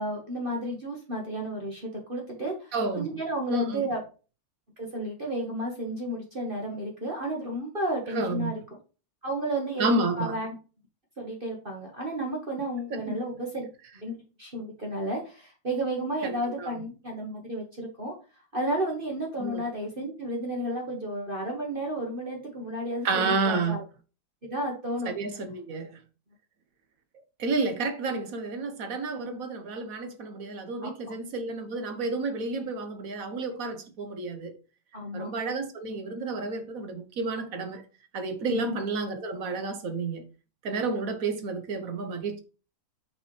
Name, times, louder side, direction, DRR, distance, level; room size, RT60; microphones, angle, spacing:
voice 1, 0.0-4.0 4.8-8.6 9.2-9.9 10.1-10.5 11.2-13.7 14.0-18.1 18.5-23.8 24.4-25.1 30.8-30.9 34.9-35.3 38.5-38.8, right 1 dB, 30° right, 1.4 m, -32 dB
voice 2, 2.7-3.1 3.5-3.8 8.1-8.5 9.8-10.4 12.9-13.2 16.2-16.7 19.4-19.6 23.0-23.8 25.1-26.0 27.4-34.5 35.1-37.8 38.1-40.3 40.6-42.4, right 3 dB, 55° right, 1.1 m, -30 dB
5.9 x 5.7 x 3.2 m
omnidirectional pair, 2.2 m